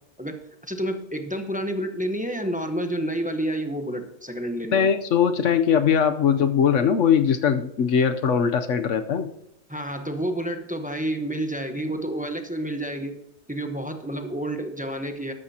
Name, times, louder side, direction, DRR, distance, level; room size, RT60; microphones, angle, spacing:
voice 1, 0.2-4.9 9.7-13.2 13.5-15.3, right 1 dB, 5° right, 5 dB, 0.8 m, -29 dB
voice 2, 4.7-9.3, left 7 dB, 60° left, 9 dB, 1.0 m, -21 dB
13.5 x 11.5 x 2.9 m, 0.80 s
omnidirectional pair, 1.6 m